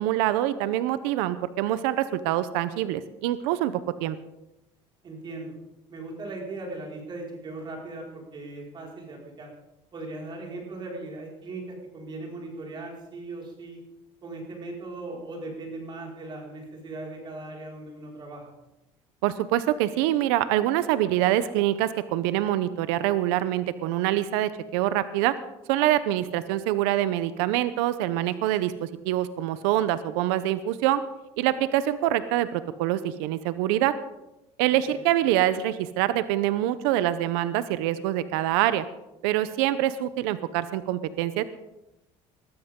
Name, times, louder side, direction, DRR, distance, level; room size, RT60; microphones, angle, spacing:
voice 1, 0.0-4.2 19.2-25.4 25.7-31.0 31.4-33.9 34.6-38.8 39.2-41.4, right 13 dB, 90° right, 14 dB, 0.7 m, -25 dB
voice 2, 5.0-5.5 5.9-9.5 9.9-13.8 14.2-18.5 34.9-35.1, right 2 dB, 35° right, -1 dB, 5.1 m, -38 dB
20.5 x 13.5 x 3.7 m, 0.96 s
cardioid pair, 110°, 13 cm